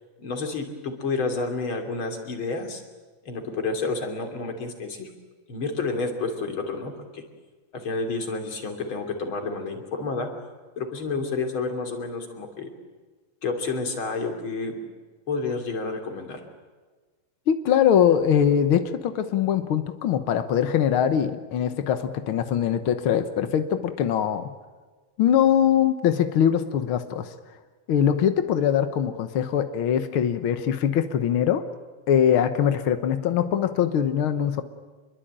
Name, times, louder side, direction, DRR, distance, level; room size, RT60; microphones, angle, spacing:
voice 1, 0.2-2.8 3.2-5.1 5.5-7.2 7.7-10.3 10.8-12.7 13.4-14.9 15.3-16.4, left 3 dB, 35° left, 5 dB, 3.5 m, -30 dB
voice 2, 17.5-24.5 25.2-27.3 27.9-31.7 32.1-34.6, left 9 dB, 80° left, 9 dB, 1.1 m, -22 dB
26.5 x 22.5 x 8.9 m, 1.4 s
omnidirectional pair, 4.0 m